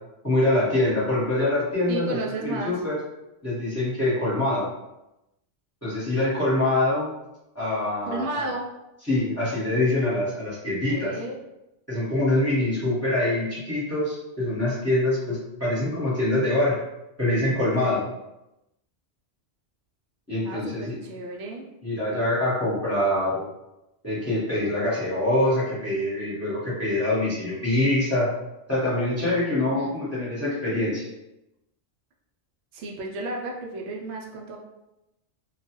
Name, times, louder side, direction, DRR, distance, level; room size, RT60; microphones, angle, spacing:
voice 1, 0.2-3.0 3.4-4.7 5.8-7.1 7.5-8.5 9.1-11.1 11.9-16.8 17.2-18.0 20.3-21.0 21.8-23.5 24.0-28.3 28.7-31.0, left 1 dB, 15° left, -9 dB, 1.0 m, -24 dB
voice 2, 1.9-2.7 8.0-8.7 10.8-11.4 17.8-18.0 20.4-21.7 29.6-29.9 32.7-34.6, right 2 dB, 70° right, 0 dB, 0.8 m, -33 dB
2.3 x 2.3 x 2.9 m, 0.92 s
omnidirectional pair, 1.3 m